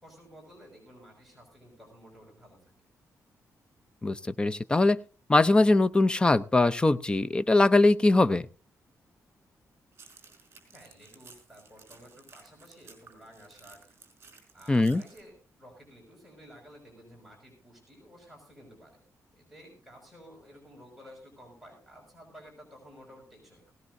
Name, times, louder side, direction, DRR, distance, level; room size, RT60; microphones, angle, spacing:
voice 1, 0.0-2.6 10.7-14.0 14.5-19.1 19.3-23.7, equal, ahead, -2 dB, 6.0 m, -53 dB
voice 2, 4.0-5.0 5.3-8.5 14.7-15.0, left 2 dB, 15° left, 14 dB, 0.6 m, -22 dB
sound 1, 9.9-15.2, right 4 dB, 40° right, 5.1 m, -55 dB
18.5 x 18.0 x 2.7 m, 0.34 s
wide cardioid pair, 150°, 6 cm